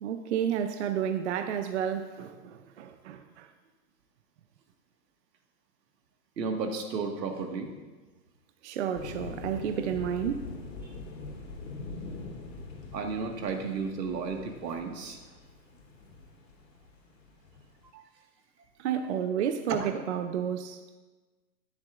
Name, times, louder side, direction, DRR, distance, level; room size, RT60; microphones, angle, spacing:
voice 1, 0.0-3.5 8.6-10.5 18.8-20.8, right 8 dB, 45° right, 0.6 m, -31 dB
voice 2, 6.4-7.7 12.5-12.7 12.9-15.2 17.9-18.0 19.8-19.9, right 4 dB, 80° right, 1.8 m, -33 dB
sound 1, 9.0-17.8, left 3 dB, 80° left, 3.2 m, -43 dB
14.0 x 9.8 x 2.5 m
hypercardioid pair, 155°, 49 cm